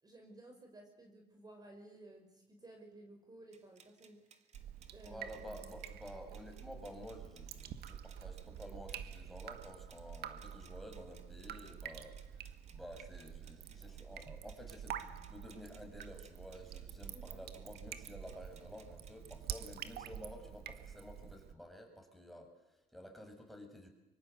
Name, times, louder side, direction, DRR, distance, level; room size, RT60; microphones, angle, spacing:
voice 1, 0.0-4.4 4.9-5.4 17.1-17.4, right 1 dB, 25° right, 3 dB, 5.0 m, -56 dB
sound 1, 3.5-19.8, right 6 dB, 40° right, 2.5 m, -65 dB
Drip, 4.5-21.5, right 9 dB, 70° right, 1.9 m, -48 dB
voice 2, 5.0-23.9, equal, ahead, 3 dB, 6.3 m, -52 dB
25.0 x 24.5 x 8.1 m, 0.96 s
cardioid pair, 110°, 17 cm